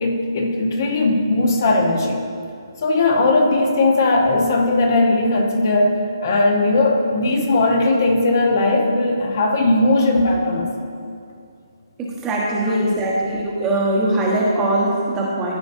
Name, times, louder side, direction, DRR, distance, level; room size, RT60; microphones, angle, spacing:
voice 1, 0.0-2.2 2.8-10.7 12.7-13.0, left 2 dB, 50° left, 1 dB, 1.1 m, -18 dB
voice 2, 12.0-15.6, right 1 dB, 15° right, -4 dB, 1.2 m, -21 dB
13.5 x 5.2 x 2.7 m, 2.4 s
hypercardioid pair, 155°, 2 cm